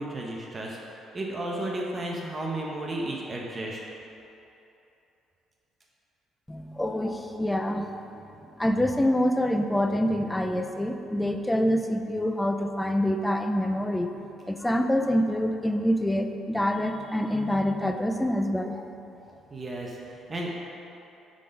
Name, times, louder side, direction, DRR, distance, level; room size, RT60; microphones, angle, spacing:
voice 1, 0.0-3.8 19.5-20.5, right 1 dB, 30° right, -2 dB, 0.8 m, -33 dB
voice 2, 6.5-8.2 8.6-14.1 14.5-18.9, equal, 10° left, 6 dB, 0.4 m, -26 dB
7.3 x 3.9 x 5.2 m, 2.9 s
cardioid pair, 105°, 0 cm